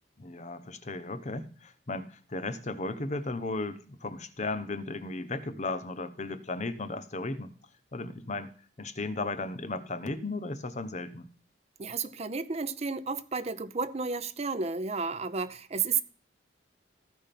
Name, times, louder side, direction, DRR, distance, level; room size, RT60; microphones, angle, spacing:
voice 1, 0.2-7.5 7.9-8.5 8.8-11.3, left 2 dB, 40° left, 0.9 m, -35 dB
voice 2, 11.8-16.0, right 5 dB, 35° right, 0.6 m, -32 dB
14.5 x 5.3 x 5.8 m
head